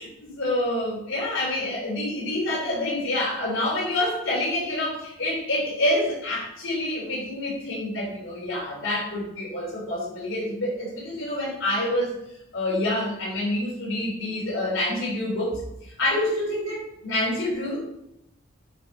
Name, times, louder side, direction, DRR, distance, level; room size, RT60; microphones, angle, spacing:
voice 1, 0.0-12.1 12.5-15.6 16.0-17.8, left 1 dB, 70° left, -4 dB, 3.1 m, -27 dB
6.8 x 6.6 x 4.0 m, 0.82 s
head